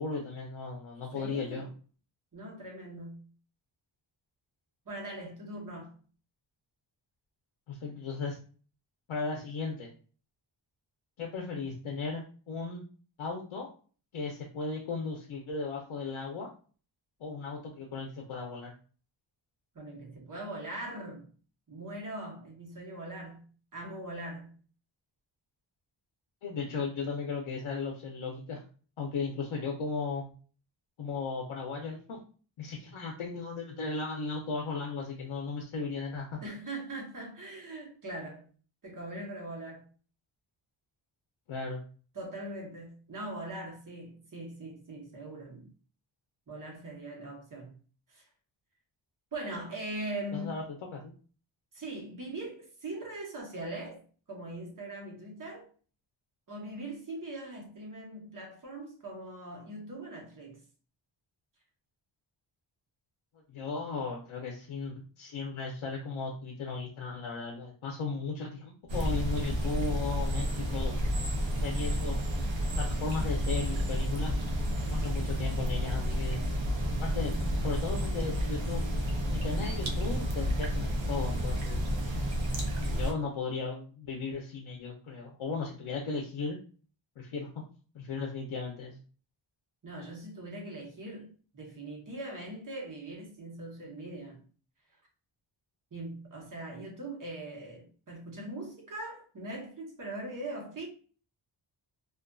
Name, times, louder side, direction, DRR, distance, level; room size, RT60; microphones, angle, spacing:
voice 1, 0.0-1.7 7.7-8.4 9.1-9.9 11.2-12.8 13.2-13.7 14.1-16.5 17.2-18.7 26.4-28.6 29.0-30.3 31.0-32.2 32.6-36.4 41.5-41.8 50.3-50.6 50.9-51.1 63.5-70.9 71.4-72.2 72.8-74.3 74.9-76.4 77.0-77.3 77.6-78.8 79.3-82.2 82.7-86.6 87.2-87.5 87.9-89.0, left 4 dB, 80° left, 0.7 m, -36 dB
voice 2, 1.1-1.7 2.3-3.3 4.9-6.0 19.7-21.3 21.7-24.6 36.4-38.5 38.8-39.9 42.1-45.7 46.5-47.8 48.1-48.2 49.3-50.6 51.7-55.7 56.5-60.6 89.8-94.4 95.9-100.9, right 1 dB, 40° right, 0.9 m, -41 dB
sound 1, 68.9-83.1, equal, 65° right, 0.7 m, -31 dB
2.5 x 2.4 x 2.2 m
wide cardioid pair, 125°, 47 cm